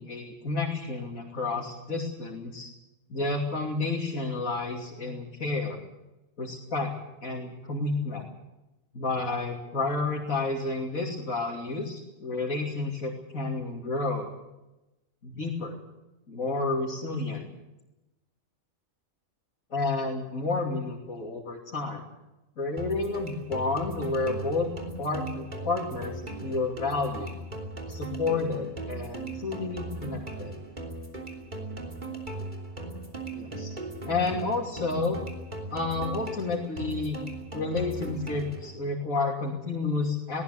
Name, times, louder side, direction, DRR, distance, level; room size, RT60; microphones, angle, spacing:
voice 1, 0.0-2.7 3.1-5.8 6.4-6.9 7.2-8.3 8.9-14.3 15.2-15.8 16.3-17.5 19.7-22.0 22.6-24.7 25.0-27.4 27.9-30.5 33.3-33.7 34.0-35.2 35.7-37.2 37.5-40.4, left 3 dB, 80° left, -2 dB, 3.3 m, -30 dB
sound 1, 22.8-38.8, right 2 dB, 35° right, 3.4 m, -38 dB
20.5 x 18.5 x 8.5 m, 0.99 s
omnidirectional pair, 1.4 m